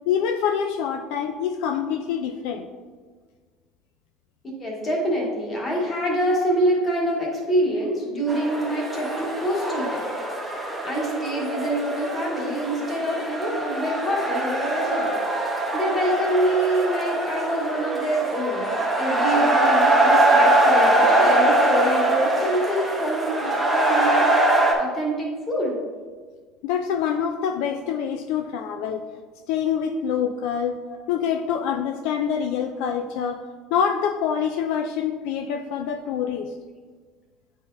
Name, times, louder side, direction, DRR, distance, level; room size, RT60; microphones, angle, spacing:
voice 1, 0.1-2.7 26.6-29.0 29.5-30.8 31.1-33.4 33.7-36.5, left 7 dB, 70° left, 6 dB, 0.3 m, -25 dB
voice 2, 4.4-10.1 10.8-15.1 15.7-24.3 24.8-25.8, right 1 dB, 20° left, -3 dB, 1.3 m, -26 dB
sound 1, 8.3-24.7, right 1 dB, 5° right, 0.7 m, -22 dB
9.4 x 4.1 x 2.6 m, 1.5 s
cardioid pair, 175°, 0 cm